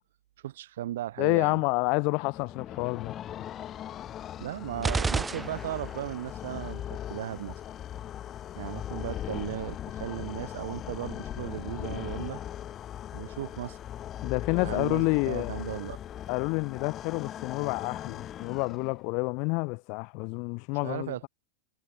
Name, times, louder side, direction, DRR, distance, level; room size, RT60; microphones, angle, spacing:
voice 1, 0.4-1.6 4.4-7.6 8.6-12.4 13.1-13.8 14.5-16.0 20.8-21.3, right 13 dB, 70° right, 2.9 m, -36 dB
voice 2, 1.2-3.1 14.2-15.5 16.3-21.2, left 32 dB, 50° left, 3.6 m, -28 dB
sound 1, 2.2-19.2, left 11 dB, 35° left, 3.1 m, -39 dB
sound 2, 4.8-6.1, right 4 dB, 15° right, 3.9 m, -30 dB
hypercardioid pair, 105°, 0 cm